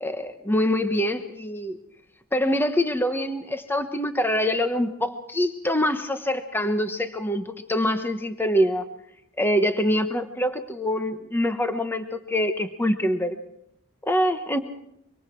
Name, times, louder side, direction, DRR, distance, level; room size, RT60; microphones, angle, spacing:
voice 1, 0.0-1.8 2.3-8.8 9.4-13.4 14.0-14.6, equal, 10° left, 8 dB, 1.1 m, -25 dB
25.0 x 24.0 x 4.6 m, 0.78 s
head